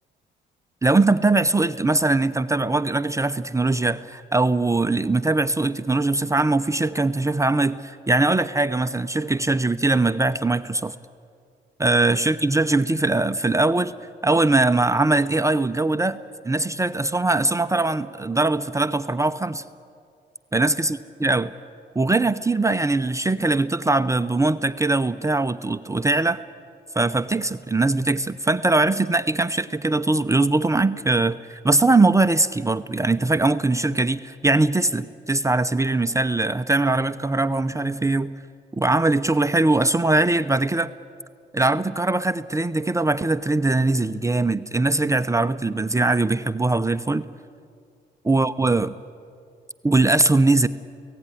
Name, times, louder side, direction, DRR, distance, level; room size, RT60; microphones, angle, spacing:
voice 1, 0.8-11.0 11.8-13.9 14.2-16.2 16.4-19.6 20.5-21.5 21.9-26.4 27.0-38.3 38.7-40.9 41.5-47.3 48.3-48.9 49.8-50.7, right 2 dB, 15° right, 10 dB, 0.7 m, -21 dB
29.5 x 17.5 x 10.0 m, 2.4 s
cardioid pair, 90°, 20 cm